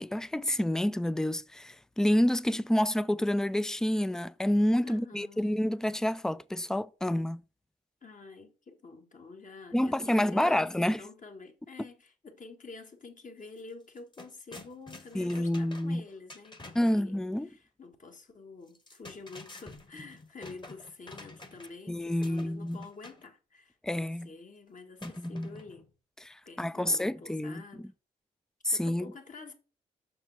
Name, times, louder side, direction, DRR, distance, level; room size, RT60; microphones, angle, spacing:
voice 1, 0.0-7.4 9.7-11.0 15.1-16.0 16.7-17.5 21.9-22.8 23.8-24.3 25.0-25.6 26.2-27.6 28.6-29.1, left 1 dB, 5° left, 0.4 m, -28 dB
voice 2, 4.8-5.5 8.0-25.9 26.4-27.9 28.7-29.5, left 4 dB, 40° left, 1.7 m, -48 dB
sound 1, 13.5-13.6 13.9-17.0 18.7-21.9 22.2-23.3 25.0-25.9, left 2 dB, 25° left, 1.5 m, -49 dB
6.9 x 6.1 x 3.3 m
hypercardioid pair, 40°, 20 cm